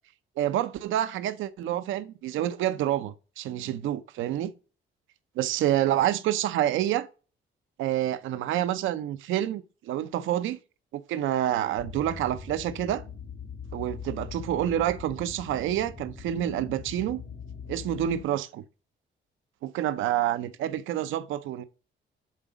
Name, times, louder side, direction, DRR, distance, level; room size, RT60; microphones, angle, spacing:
voice 1, 0.4-4.5 5.4-7.1 7.8-10.6 10.9-13.0 13.7-17.2 17.7-18.6 19.6-21.6, right 12 dB, 85° right, 0.6 m, -28 dB
sound 1, 11.8-18.2, left 6 dB, 85° left, 2.9 m, -42 dB
7.4 x 4.1 x 4.7 m
cardioid pair, 90°, 20 cm